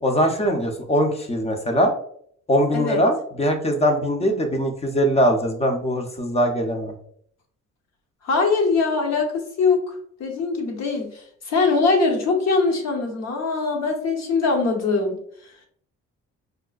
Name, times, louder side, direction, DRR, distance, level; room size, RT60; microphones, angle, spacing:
voice 1, 0.0-1.9 2.5-6.9, equal, 20° left, 5 dB, 0.6 m, -21 dB
voice 2, 8.2-9.9 10.2-15.2, left 4 dB, 60° left, 2 dB, 0.9 m, -22 dB
4.6 x 2.1 x 2.3 m, 0.64 s
cardioid pair, 90°, 30 cm